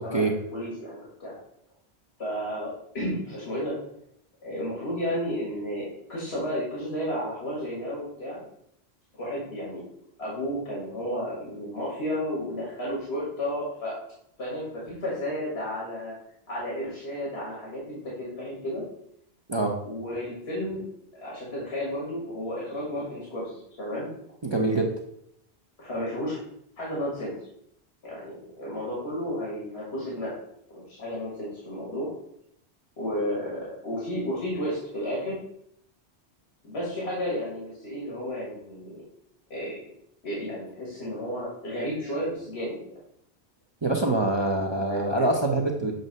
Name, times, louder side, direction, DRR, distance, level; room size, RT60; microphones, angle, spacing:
voice 1, 0.0-1.4 2.2-2.7 2.9-3.8 4.4-8.4 9.1-9.8 10.2-13.9 14.4-16.1 16.5-18.8 19.8-20.8 21.1-24.1 25.8-26.4 26.8-27.3 28.0-30.3 30.7-32.1 33.0-35.4 36.6-39.0 39.5-39.8 40.2-42.8 44.4-45.3, equal, 70° left, -6 dB, 2.1 m, -32 dB
voice 2, 24.4-24.9 43.8-45.9, right 2 dB, 30° right, 0 dB, 0.6 m, -24 dB
7.7 x 2.6 x 5.3 m, 0.72 s
omnidirectional pair, 1.1 m